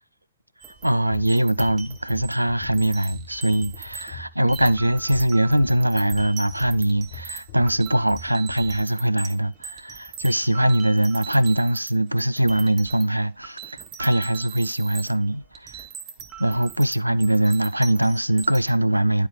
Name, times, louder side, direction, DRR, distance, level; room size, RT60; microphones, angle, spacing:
sound 1, 0.6-4.2 4.5-11.9 12.2-18.8, right 7 dB, 30° right, 1.0 m, -41 dB
voice 1, 0.8-15.9 16.4-19.3, right 1 dB, 85° right, 0.3 m, -22 dB
sound 2, 1.9-8.8, left 4 dB, 55° left, 1.8 m, -40 dB
11.0 x 4.6 x 3.8 m
figure-of-eight pair, 100°, 0 cm